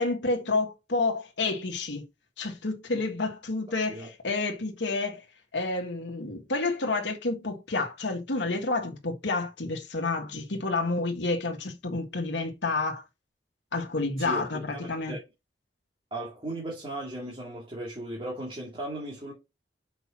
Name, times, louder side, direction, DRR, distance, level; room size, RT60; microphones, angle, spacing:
voice 1, 0.0-2.1 2.4-5.2 5.5-13.0 13.7-15.2, left 3 dB, 75° left, 1.5 m, -29 dB
voice 2, 14.2-15.2 16.1-19.3, right 1 dB, 30° right, 2.4 m, -37 dB
6.0 x 5.4 x 4.3 m
head